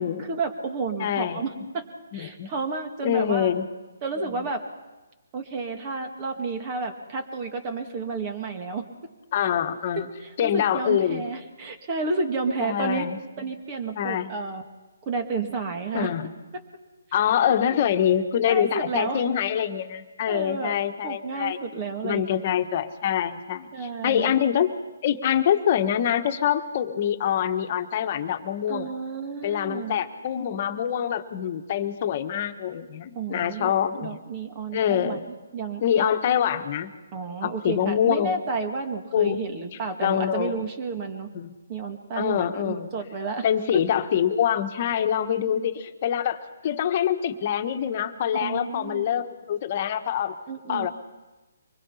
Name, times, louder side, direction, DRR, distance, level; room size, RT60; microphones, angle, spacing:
voice 1, 0.0-1.8 2.1-3.5 4.0-4.6 5.3-8.9 10.0-13.1 13.4-14.6 15.1-16.1 17.4-17.5 18.4-19.2 20.3-22.2 23.7-24.3 28.7-30.0 33.2-35.3 35.5-36.1 37.1-41.3 41.7-43.4 43.7-43.8 45.4-45.6 48.3-49.0 50.5-50.9, right 4 dB, 30° right, 5 dB, 2.0 m, -31 dB
voice 2, 1.0-1.7 2.1-2.5 3.0-3.6 4.2-4.3 9.3-10.1 10.4-11.2 12.6-13.5 14.0-14.3 15.9-16.3 17.1-21.6 22.0-24.7 25.0-28.9 29.4-34.2 34.7-35.2 35.8-36.9 37.4-38.4 39.1-39.4 40.0-40.6 41.3-41.5 42.2-42.9 43.4-50.4 50.7-50.9, left 9 dB, 40° left, 7 dB, 1.5 m, -25 dB
24.5 x 20.5 x 5.8 m, 1.2 s
hypercardioid pair, 150°, 0 cm